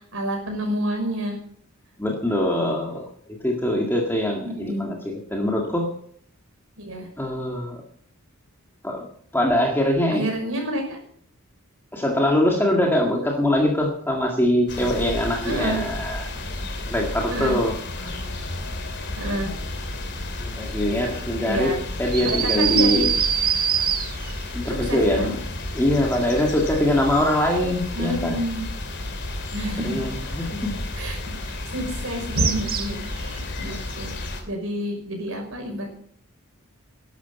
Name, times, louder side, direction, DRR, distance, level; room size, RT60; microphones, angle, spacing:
voice 1, 0.0-1.4 4.4-4.9 6.8-7.1 10.1-11.0 15.4-15.8 17.3-17.6 19.2-19.5 21.4-21.8 22.2-23.1 24.7-25.3 27.9-28.6 29.5-30.0 31.0-34.1 34.4-35.9, right 1 dB, 65° right, 2 dB, 5.8 m, -29 dB
voice 2, 2.0-3.1 3.4-5.9 7.2-7.8 8.8-9.1 9.3-10.3 11.9-16.3 16.9-18.2 20.4-21.7 22.0-23.1 24.5-25.4 25.7-28.4 29.8-30.7 33.7-33.8, left 1 dB, 10° left, 0 dB, 1.8 m, -23 dB
sound 1, 14.7-34.4, left 2 dB, 50° left, 2.8 m, -32 dB
sound 2, 22.1-24.4 32.4-33.1, right 8 dB, 45° right, 1.6 m, -23 dB
12.5 x 11.5 x 7.0 m, 0.62 s
head